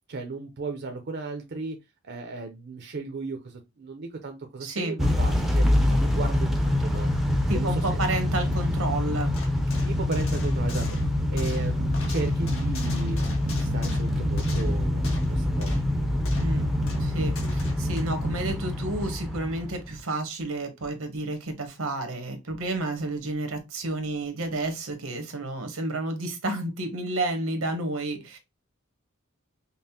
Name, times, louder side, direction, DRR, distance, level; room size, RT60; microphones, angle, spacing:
voice 1, 0.1-1.8 2.0-7.1 7.5-8.0 9.8-10.9 11.3-15.9, right 3 dB, 55° right, 5 dB, 0.6 m, -36 dB
voice 2, 4.6-5.0 7.5-9.3 16.3-16.7 17.0-28.4, right 2 dB, 85° right, 7 dB, 1.0 m, -31 dB
Motor vehicle (road) / Engine starting / Accelerating revving vroom, 5.0-20.0, left 1 dB, ahead, 0.5 m, -25 dB
sound 1, 9.3-15.3 15.6-15.9 16.2-16.6 16.9-18.0, left 2 dB, 75° left, 1.4 m, -41 dB
5.3 x 2.0 x 2.8 m, 0.22 s
head